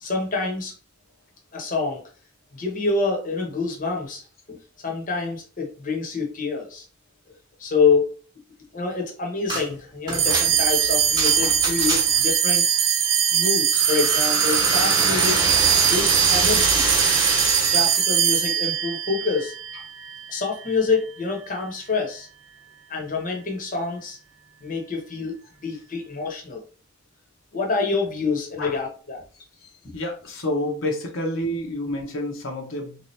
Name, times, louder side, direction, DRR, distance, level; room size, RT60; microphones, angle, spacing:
voice 1, 0.0-0.7 1.5-2.1 2.5-4.2 4.5-4.6 4.8-6.8 7.6-8.1 8.7-12.7 13.3-15.5 15.8-16.9 17.7-19.5 20.3-22.3 22.9-24.2 24.6-25.4 25.6-26.6 27.5-29.2, left 4 dB, 40° left, 1 dB, 0.9 m, -26 dB
sound 1, 9.5-9.7 10.1-12.3 13.7-18.0, right 2 dB, 20° right, 0.9 m, -25 dB
sound 2, 10.1-20.8, right 8 dB, 65° right, 0.5 m, -21 dB
voice 2, 29.6-33.0, left 1 dB, 75° left, 0 dB, 0.9 m, -29 dB
3.5 x 2.8 x 3.2 m, 0.37 s
head